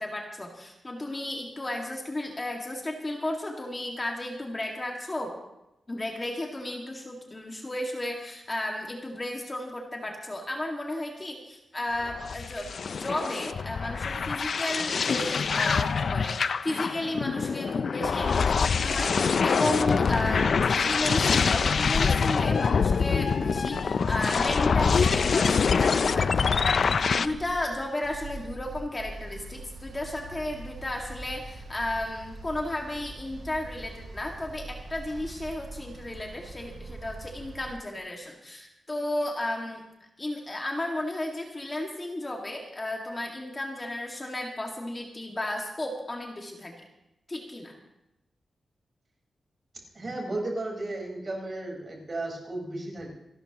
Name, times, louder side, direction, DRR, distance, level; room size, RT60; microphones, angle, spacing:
voice 1, 0.0-5.3 5.9-26.5 27.1-39.8 40.2-46.7 47.3-47.7, left 1 dB, 25° left, 1 dB, 1.9 m, -34 dB
sound 1, 12.0-27.3, left 5 dB, 60° left, 0.4 m, -25 dB
sound 2, 20.1-37.7, right 2 dB, 75° right, 3.5 m, -43 dB
voice 2, 49.9-53.1, right 2 dB, 40° right, 0 dB, 4.4 m, -34 dB
27.0 x 12.5 x 2.9 m, 0.91 s
wide cardioid pair, 120°, 0 cm